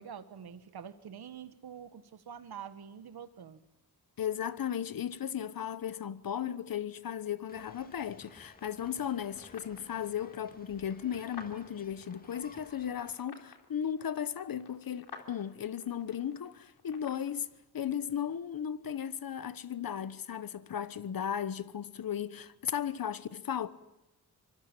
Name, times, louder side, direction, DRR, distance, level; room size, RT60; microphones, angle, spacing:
voice 1, 0.0-3.6, right 8 dB, 75° right, 1.6 m, -46 dB
voice 2, 4.2-23.7, left 9 dB, 60° left, 1.2 m, -36 dB
sound 1, 7.5-13.1, left 2 dB, 20° left, 2.3 m, -56 dB
sound 2, 8.2-17.3, left 5 dB, 80° left, 3.6 m, -54 dB
25.0 x 25.0 x 7.5 m
cardioid pair, 85°, 39 cm